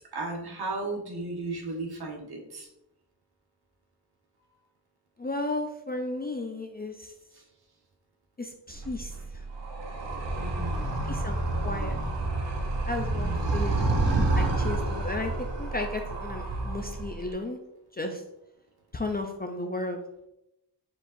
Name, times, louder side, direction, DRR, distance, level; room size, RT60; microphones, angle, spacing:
voice 1, 0.1-2.7 10.4-11.1 11.5-12.2 13.1-13.6, right 2 dB, 65° right, 0 dB, 1.1 m, -36 dB
voice 2, 5.2-7.1 8.4-9.4 11.1-12.0 12.9-13.9 14.4-17.6 17.9-18.2 18.9-20.0, left 2 dB, 25° left, 4 dB, 0.3 m, -34 dB
Animal, 8.7-17.3, right 2 dB, 90° right, 0.9 m, -29 dB
4.7 x 4.1 x 2.6 m, 0.84 s
wide cardioid pair, 130°, 41 cm